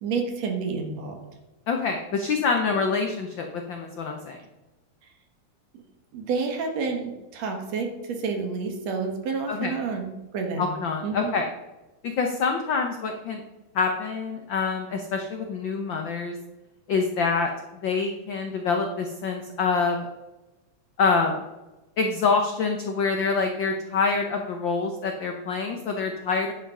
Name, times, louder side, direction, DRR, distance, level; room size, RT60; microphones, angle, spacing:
voice 1, 0.0-1.2 2.7-2.8 6.1-10.8 11.0-11.4, right 4 dB, 65° right, 4 dB, 2.5 m, -29 dB
voice 2, 1.7-4.4 9.5-9.7 10.6-11.5 12.0-13.4 13.7-16.3 16.9-17.5 17.8-20.0 21.0-21.4 22.0-26.5, left 4 dB, 85° left, 4 dB, 1.0 m, -26 dB
10.0 x 7.4 x 5.5 m, 1.1 s
omnidirectional pair, 3.4 m